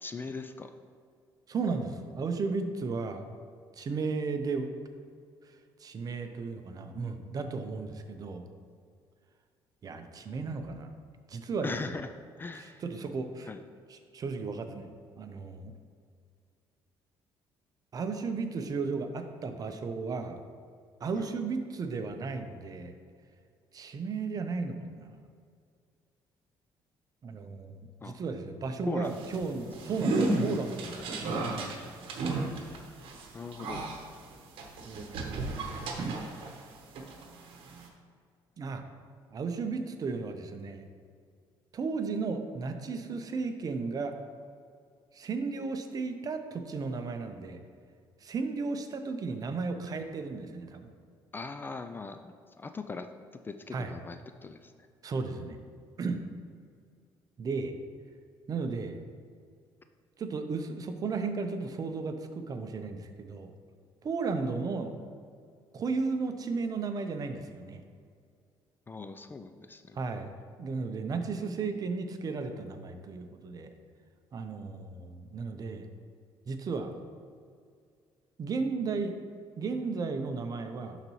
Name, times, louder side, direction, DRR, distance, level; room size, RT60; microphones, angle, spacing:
voice 1, 0.0-0.7 11.6-12.1 12.4-12.8 13.5-13.6 21.1-21.3 28.0-28.2 28.9-29.2 33.3-33.8 51.3-53.1 53.4-54.7 68.9-70.0, left 4 dB, 25° left, 8 dB, 0.3 m, -39 dB
voice 2, 1.5-3.2 3.8-4.7 5.8-8.5 9.8-10.9 11.3-12.0 12.5-13.5 13.9-15.7 17.9-20.4 21.0-23.0 23.7-25.1 27.2-32.1 34.8-36.2 38.6-38.8 39.3-40.9 41.7-44.1 45.1-47.6 48.2-50.9 53.7-53.9 55.0-55.6 56.0-56.2 57.4-57.7 58.5-59.0 60.2-63.5 64.0-64.9 65.7-67.8 69.9-70.3 70.6-73.7 74.3-75.9 76.5-76.9 78.4-79.2 79.6-81.0, right 4 dB, 45° right, 7 dB, 0.6 m, -34 dB
sound 1, 29.1-36.6 36.9-37.9, right 2 dB, 75° right, 0.9 m, -33 dB
11.0 x 4.0 x 3.1 m, 2.2 s
cardioid pair, 100°, 9 cm